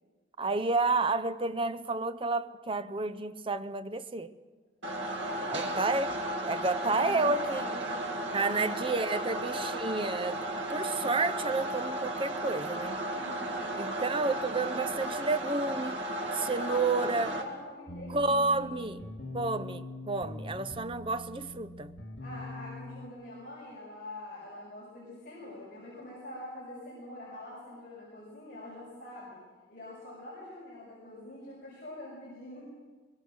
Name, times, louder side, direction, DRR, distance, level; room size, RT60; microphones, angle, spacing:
voice 1, 0.4-4.3 5.5-6.1 6.4-7.6 8.3-10.4 10.7-13.0 13.7-16.0 16.3-17.3 18.1-19.0 19.3-21.9, right 3 dB, 30° right, 0.7 m, -30 dB
sound 1, 4.8-17.4, right 1 dB, 90° right, 2.8 m, -34 dB
voice 2, 5.2-5.8 6.8-9.0 9.4-9.7 13.1-13.9 16.5-18.8 22.2-29.4 29.7-32.7, left 1 dB, 50° left, 6.2 m, -44 dB
sound 2, 17.9-23.1, left 2 dB, 80° left, 2.6 m, -43 dB
22.5 x 22.5 x 6.4 m
head